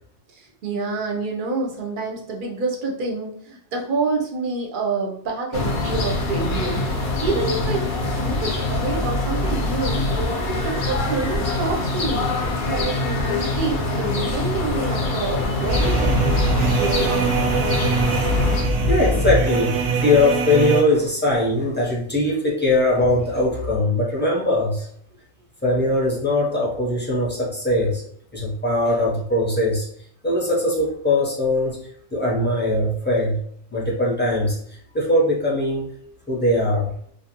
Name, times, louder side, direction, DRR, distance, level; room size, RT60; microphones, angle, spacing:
voice 1, 0.3-6.8 7.2-10.1 10.5-17.4, right 3 dB, 55° right, 0 dB, 0.6 m, -28 dB
sound 1, 5.5-18.6, left 2 dB, 55° left, 0.6 m, -24 dB
sound 2, 15.7-20.8, right 3 dB, 85° right, 0.9 m, -22 dB
voice 2, 18.8-24.9 25.6-28.0 28.3-29.9 30.2-31.8 32.1-33.4 33.7-34.6 34.9-35.9 36.3-36.9, left 1 dB, 15° left, -5 dB, 0.4 m, -21 dB
2.6 x 2.0 x 2.8 m, 0.63 s
omnidirectional pair, 1.2 m